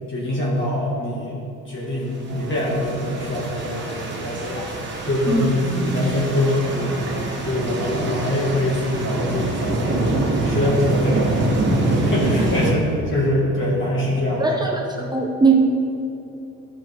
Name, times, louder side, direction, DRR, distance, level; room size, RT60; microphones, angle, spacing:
voice 1, 0.1-1.4 1.7-4.7 5.0-7.0 7.4-14.5, left 1 dB, 40° left, -6 dB, 2.1 m, -24 dB
sound 1, 2.3-14.3, right 4 dB, 80° right, 0.6 m, -36 dB
sound 2, 2.4-12.7, right 2 dB, 40° right, 1.5 m, -25 dB
voice 2, 14.4-15.5, right 3 dB, 15° right, -1 dB, 0.8 m, -20 dB
11.0 x 6.3 x 3.6 m, 2.9 s
cardioid pair, 90°, 30 cm